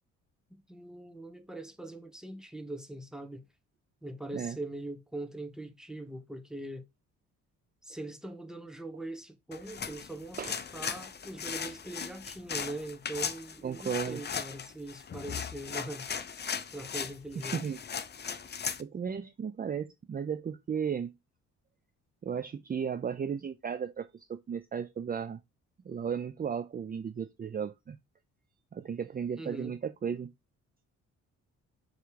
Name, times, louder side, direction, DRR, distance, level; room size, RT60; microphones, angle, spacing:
voice 1, 0.5-3.5 4.0-6.9 7.8-16.1 16.7-17.6 29.3-29.7, right 2 dB, ahead, 1.2 m, -42 dB
sound 1, 9.5-18.8, left 6 dB, 35° left, 0.7 m, -38 dB
voice 2, 13.6-14.2 17.5-17.8 18.8-21.1 22.2-25.4 25.8-28.0 28.7-30.3, right 7 dB, 30° right, 0.6 m, -35 dB
6.6 x 3.3 x 4.7 m
cardioid pair, 90°, 30 cm